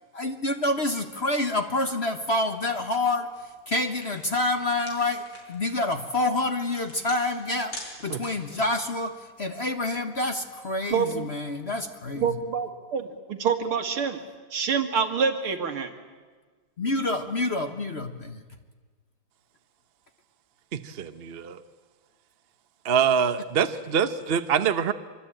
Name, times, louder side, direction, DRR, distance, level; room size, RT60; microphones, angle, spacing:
voice 1, 0.1-12.4 16.8-18.4, left 2 dB, 35° left, 7 dB, 1.2 m, -28 dB
sound 1, 3.4-3.5 3.8-8.6, left 1 dB, 60° left, 6.5 m, -44 dB
voice 2, 10.9-11.3 12.2-14.2 14.5-15.9, right 6 dB, 80° right, 6 dB, 2.9 m, -26 dB
voice 3, 20.7-21.6 22.8-24.9, right 7 dB, 50° right, 11 dB, 0.7 m, -25 dB
25.0 x 24.5 x 9.0 m, 1.4 s
omnidirectional pair, 2.4 m